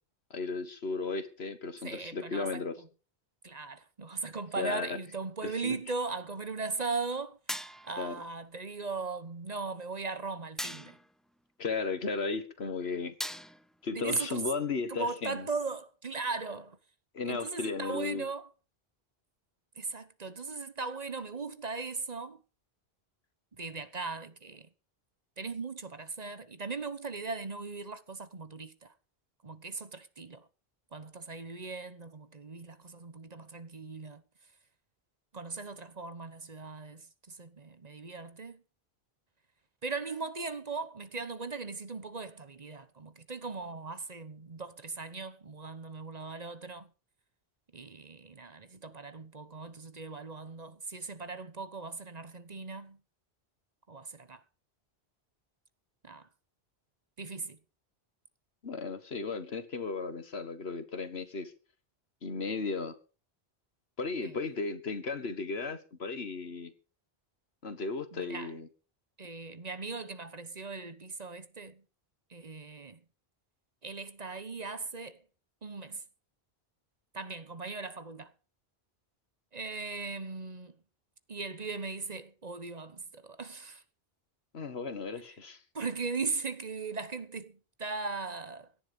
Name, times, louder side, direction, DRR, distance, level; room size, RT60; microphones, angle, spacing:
voice 1, 0.3-2.8 4.6-5.0 5.4-5.8 8.0-8.2 11.6-13.1 13.8-15.5 17.1-18.3 58.6-61.5 62.2-62.9 64.0-66.7 67.6-68.7 84.5-85.6, left 4 dB, 80° left, 1.8 m, -35 dB
voice 2, 1.8-2.6 3.4-7.4 7.8-11.0 13.9-14.4 14.9-16.8 17.3-18.5 19.7-22.4 23.5-24.7 25.4-28.9 29.4-30.5 30.9-34.2 35.3-38.6 39.8-46.9 47.7-53.0 53.9-54.4 56.0-56.3 57.2-57.6 64.2-64.4 68.1-68.5 69.2-71.8 72.3-73.0 73.8-75.2 75.6-76.0 77.1-78.3 79.5-80.7 81.3-83.8 85.7-88.7, right 4 dB, 40° right, 1.1 m, -38 dB
clang metal (hit), 7.5-8.1 10.6-11.1 13.2-13.8, equal, ahead, 0.7 m, -39 dB
17.0 x 11.0 x 5.4 m
omnidirectional pair, 1.0 m